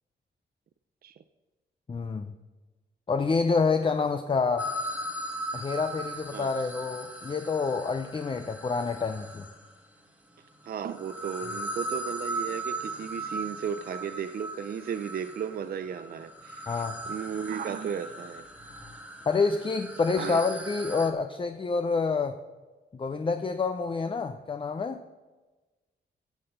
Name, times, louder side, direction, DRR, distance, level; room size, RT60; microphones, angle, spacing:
voice 1, 1.9-2.3 3.1-4.7 5.5-9.5 16.7-17.1 19.3-22.4 22.9-25.0, left 4 dB, 30° left, 0.6 m, -28 dB
sound 1, 4.6-9.8 10.6-21.1, right 1 dB, 10° right, 1.4 m, -38 dB
voice 2, 10.6-18.4 20.2-20.4, right 7 dB, 55° right, 0.5 m, -35 dB
16.5 x 5.9 x 5.5 m
wide cardioid pair, 110°, 19 cm